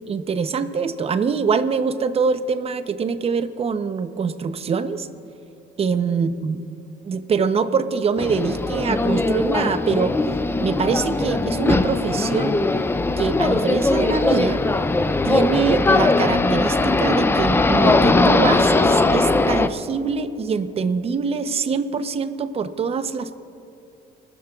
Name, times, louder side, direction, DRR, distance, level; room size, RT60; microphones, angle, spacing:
voice 1, 0.1-5.1 5.8-6.6 7.0-10.1 10.6-12.6 13.2-14.6 15.2-23.4, right 5 dB, 35° right, 10 dB, 0.8 m, -24 dB
sound 1, 8.2-19.7, left 2 dB, 15° left, 0.5 m, -19 dB
28.0 x 13.0 x 2.4 m, 2.8 s
cardioid pair, 110°, 17 cm